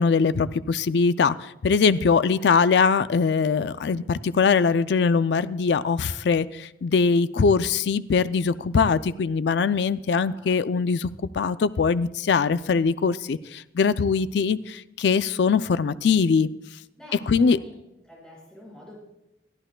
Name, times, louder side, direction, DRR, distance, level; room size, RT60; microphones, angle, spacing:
voice 1, 0.0-11.1 11.3-16.5 17.3-17.6, left 5 dB, 70° left, 14 dB, 0.4 m, -22 dB
voice 2, 10.2-10.6 17.0-17.8 18.0-19.0, left 1 dB, 5° left, -5 dB, 5.5 m, -48 dB
22.0 x 13.5 x 2.2 m, 0.89 s
head